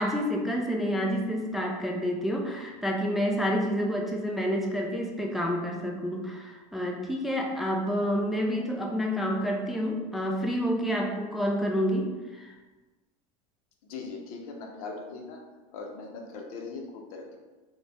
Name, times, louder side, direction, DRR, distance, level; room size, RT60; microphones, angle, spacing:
voice 1, 0.0-12.5, equal, ahead, 0 dB, 0.3 m, -29 dB
voice 2, 13.9-15.4 15.7-17.4, left 4 dB, 75° left, 2 dB, 0.6 m, -40 dB
2.5 x 2.2 x 3.3 m, 1.2 s
supercardioid pair, 100°, 18 cm